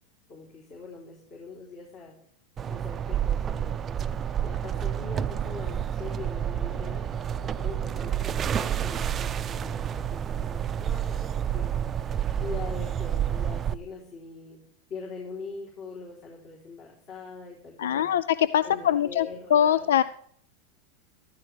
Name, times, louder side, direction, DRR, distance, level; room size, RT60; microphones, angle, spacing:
voice 1, 0.3-2.1 2.7-4.0 4.4-14.6 14.9-18.1 18.6-19.9, left 4 dB, 45° left, -2 dB, 3.6 m, -42 dB
sound 1, 2.6-13.7, right 9 dB, 30° right, 0.6 m, -29 dB
voice 2, 17.8-19.3 19.5-20.0, left 10 dB, 85° left, 16 dB, 0.4 m, -22 dB
14.0 x 13.0 x 3.4 m, 0.63 s
supercardioid pair, 120°, 0 cm